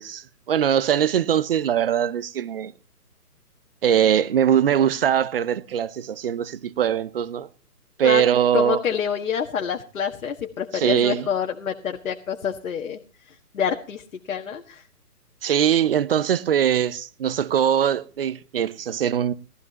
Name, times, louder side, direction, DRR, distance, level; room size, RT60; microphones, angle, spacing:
voice 1, 0.0-2.7 3.8-7.5 8.0-8.8 10.7-11.3 15.4-19.3, right 9 dB, 40° right, 0.7 m, -21 dB
voice 2, 8.5-13.0 13.3-14.8, left 7 dB, 60° left, 1.6 m, -27 dB
19.5 x 14.0 x 2.9 m
figure-of-eight pair, 140°, 46 cm